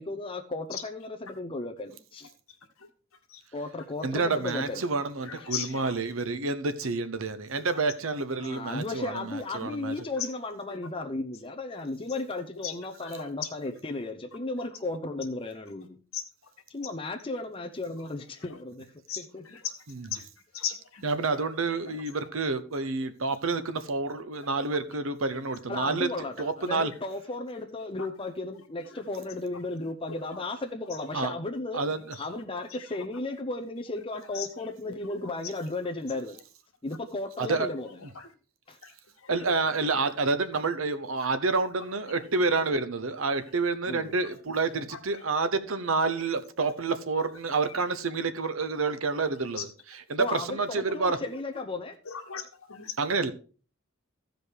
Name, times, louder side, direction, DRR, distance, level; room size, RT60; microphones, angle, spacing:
voice 1, 0.0-2.3 3.5-4.9 5.2-5.4 8.4-16.0 16.7-18.9 19.2-19.5 25.7-31.8 32.2-36.4 36.8-38.0 38.7-38.8 43.9-44.1 50.2-52.0, left 2 dB, 25° left, 0.8 m, -35 dB
voice 2, 4.0-9.9 19.9-20.1 21.0-26.1 26.4-26.9 31.1-31.3 31.7-32.0 37.5-37.7 39.3-51.2 53.0-53.3, right 3 dB, 70° right, 0.9 m, -28 dB
voice 3, 5.2-6.0 7.6-7.8 10.2-10.3 12.6-12.7 13.0-13.2 16.1-16.2 19.1-19.7 20.6-21.0 21.8-21.9 34.3-34.5 35.1-35.2 38.2-38.3 38.8-38.9 39.2-39.6 42.1-42.2 45.1-45.2 46.0-46.1 46.6-46.7 49.6-49.7 52.1-52.9, left 8 dB, 85° left, 1.7 m, -37 dB
14.0 x 5.2 x 4.8 m
head